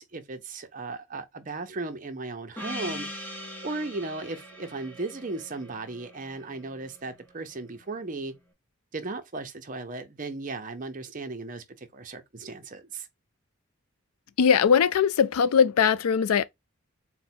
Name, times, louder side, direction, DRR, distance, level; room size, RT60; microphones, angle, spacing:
voice 1, 0.0-3.1 3.6-8.3 8.9-13.1, right 3 dB, 35° right, 0.6 m, -36 dB
Gong, 2.6-7.3, left 1 dB, 10° left, 0.7 m, -41 dB
voice 2, 14.4-16.4, left 7 dB, 85° left, 0.4 m, -20 dB
4.1 x 2.1 x 4.2 m
head